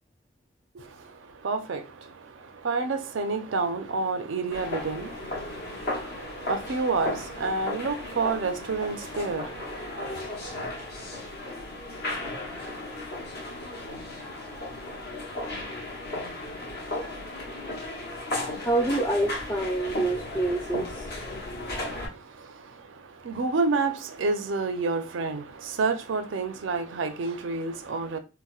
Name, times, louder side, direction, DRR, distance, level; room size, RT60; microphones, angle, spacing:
voice 1, 0.7-10.8 21.8-28.2, right 4 dB, 65° right, 0.5 m, -30 dB
sound 1, 4.5-22.1, left 1 dB, 50° left, 0.9 m, -35 dB
voice 2, 18.5-21.1, right 2 dB, 15° left, 0.3 m, -27 dB
4.1 x 2.0 x 2.3 m
head